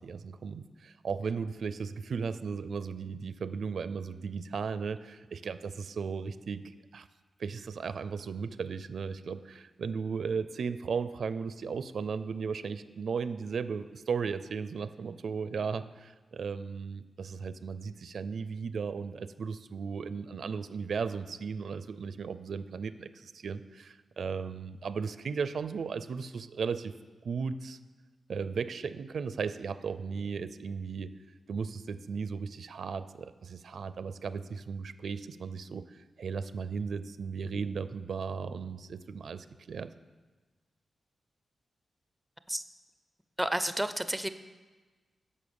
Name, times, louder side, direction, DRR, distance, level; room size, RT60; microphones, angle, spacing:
voice 1, 0.0-7.1 7.4-26.9 27.2-27.8 28.3-31.1 31.5-39.9, right 5 dB, 65° right, 13 dB, 0.4 m, -36 dB
voice 2, 43.4-44.3, right 1 dB, 5° right, 11 dB, 0.4 m, -31 dB
11.5 x 5.6 x 6.9 m, 1.3 s
wide cardioid pair, 135°, 0 cm